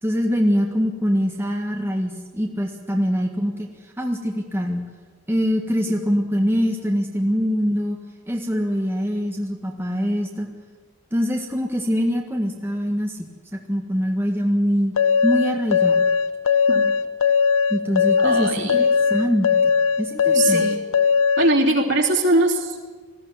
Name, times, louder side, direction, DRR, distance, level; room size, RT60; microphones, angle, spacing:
voice 1, 0.0-3.7 4.0-4.9 5.3-8.0 8.3-10.5 11.1-14.9 15.2-16.1 17.7-19.7 20.0-20.6, equal, 10° right, 0 dB, 1.6 m, -23 dB
sound 1, 15.0-21.5, left 6 dB, 90° left, 0.8 m, -19 dB
voice 2, 18.2-18.8 20.3-20.8 21.4-22.8, right 2 dB, 60° right, 0 dB, 3.3 m, -21 dB
20.0 x 15.5 x 9.7 m, 1.5 s
head